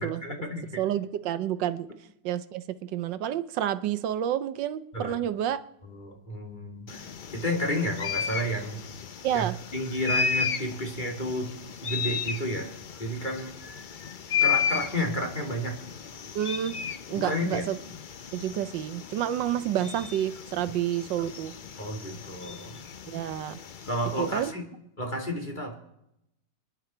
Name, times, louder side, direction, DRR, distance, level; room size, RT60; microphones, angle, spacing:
voice 1, 0.0-0.7 4.9-5.2 5.8-8.8 9.3-11.5 11.8-13.5 14.4-15.8 17.1-17.6 21.8-22.8 23.8-24.7 25.0-25.7, equal, 25° left, 1 dB, 2.9 m, -31 dB
voice 2, 0.8-1.9 2.2-5.6 9.2-9.6 16.3-16.8 17.1-17.8 18.3-21.5 23.1-23.6 24.2-24.5, right 11 dB, 85° right, 13 dB, 1.5 m, -29 dB
sound 1, 6.9-24.5, left 7 dB, 70° left, 0.4 m, -34 dB
27.5 x 10.5 x 4.4 m, 0.81 s
omnidirectional pair, 1.9 m